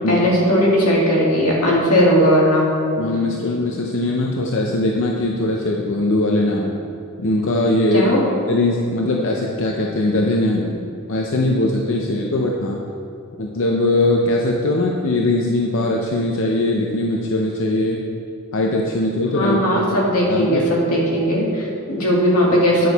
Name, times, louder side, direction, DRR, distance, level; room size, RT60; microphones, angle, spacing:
voice 1, 0.1-2.6 7.9-8.2 19.3-22.9, equal, 90° left, -3 dB, 2.0 m, -17 dB
voice 2, 3.0-6.8 7.2-8.1 8.5-12.8 13.4-18.0 18.5-19.9 20.3-20.6, left 1 dB, 60° left, -1 dB, 0.6 m, -20 dB
9.4 x 6.3 x 4.0 m, 2.6 s
head